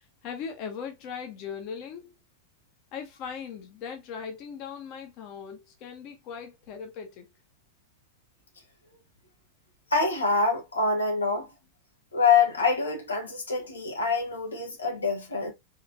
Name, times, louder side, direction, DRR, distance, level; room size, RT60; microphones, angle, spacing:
voice 1, 0.0-2.2 2.9-7.3, left 6 dB, 40° left, 1.2 m, -39 dB
voice 2, 9.9-11.5 12.1-15.5, left 4 dB, 75° left, 1.3 m, -25 dB
4.0 x 3.8 x 2.8 m
figure-of-eight pair, 90°, 0 cm